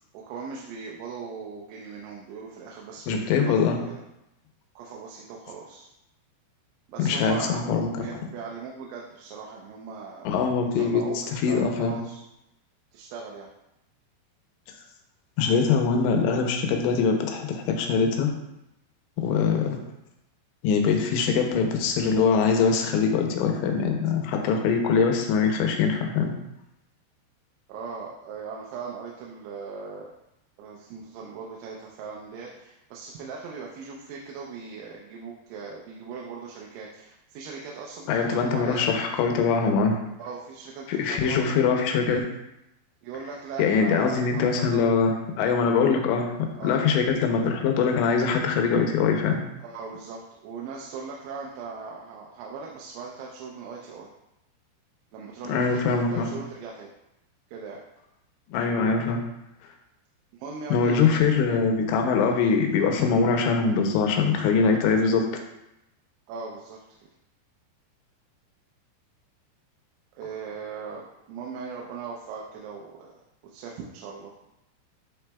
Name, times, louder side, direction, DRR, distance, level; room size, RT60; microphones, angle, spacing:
voice 1, 0.1-3.5 3.9-4.0 4.8-5.9 6.9-7.7 8.0-10.3 10.8-12.2 12.9-13.5 27.7-30.1 30.6-38.9 40.2-41.6 43.0-44.9 46.6-46.8 49.6-54.1 55.1-56.9 57.5-57.8 60.4-61.2 66.3-66.8 70.2-73.1 73.4-74.3, right 5 dB, 85° right, -2 dB, 3.1 m, -39 dB
voice 2, 3.1-3.8 7.0-7.9 10.3-11.0 11.3-12.0 15.4-18.3 19.2-19.8 20.6-26.3 38.1-40.0 40.9-42.2 43.6-46.3 46.6-49.4 55.4-56.3 58.5-59.2 60.7-65.4, left 5 dB, 80° left, 3 dB, 2.8 m, -23 dB
11.5 x 4.0 x 2.3 m, 0.87 s
omnidirectional pair, 5.4 m